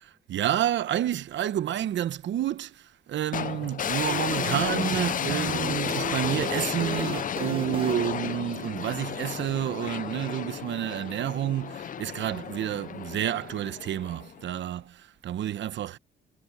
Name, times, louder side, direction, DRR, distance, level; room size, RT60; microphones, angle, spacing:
voice 1, 0.0-16.0, right 11 dB, 70° right, 1.0 m, -30 dB
sound 1, 3.3-14.5, left 9 dB, 40° left, 0.5 m, -32 dB
sound 2, 4.1-8.7, right 5 dB, 25° right, 0.6 m, -36 dB
cardioid pair, 90°, 20 cm